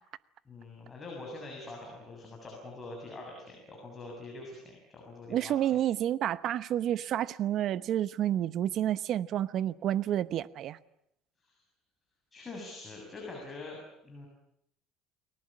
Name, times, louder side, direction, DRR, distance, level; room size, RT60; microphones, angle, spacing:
voice 1, 0.5-5.6 11.4-11.6 12.3-14.3, left 2 dB, 20° left, 7.1 m, -44 dB
voice 2, 5.3-10.8, right 11 dB, 45° right, 1.0 m, -29 dB
30.0 x 20.5 x 8.8 m
cardioid pair, 155°, 0 cm